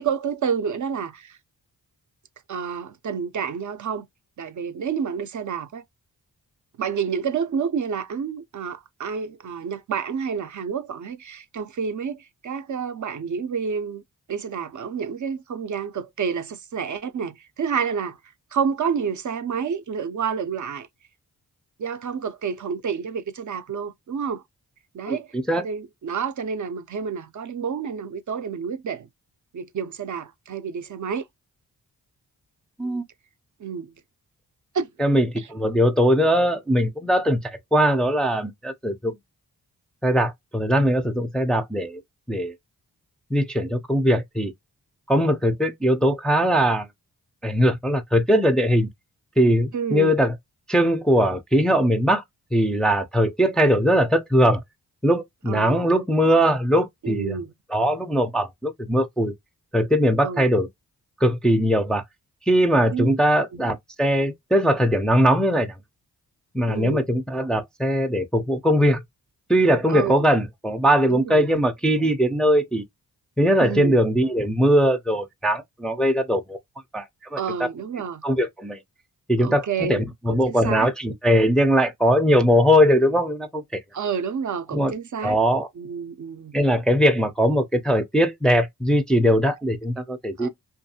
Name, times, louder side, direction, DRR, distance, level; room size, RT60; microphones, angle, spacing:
voice 1, 0.0-1.4 2.5-4.1 4.4-5.8 6.8-14.0 14.3-18.2 18.5-20.9 21.8-24.4 24.9-25.3 25.5-29.1 29.5-31.2 33.6-33.9 34.7-34.9 35.4-35.5 49.7-50.2 55.5-56.0 57.0-57.5 60.2-60.5 62.9-63.1 63.5-63.7 66.7-67.0 69.9-70.2 71.1-71.6 73.6-74.0 77.4-78.2 79.4-80.9 83.9-85.4 85.8-86.5 90.4-90.5, right 6 dB, 50° right, 0.5 m, -29 dB
voice 2, 35.0-39.1 40.0-42.0 42.3-42.5 43.3-44.5 45.1-46.9 47.4-48.9 49.4-50.3 50.7-52.2 52.5-54.6 55.0-57.4 57.7-59.3 59.7-60.7 61.2-62.0 62.5-65.7 66.5-69.0 69.5-72.8 73.4-76.6 76.9-77.0 77.3-77.7 78.2-78.8 79.3-83.8 84.7-84.9 85.2-85.7 86.5-90.5, equal, ahead, 0.4 m, -20 dB
2.5 x 2.3 x 2.7 m
cardioid pair, 55°, 38 cm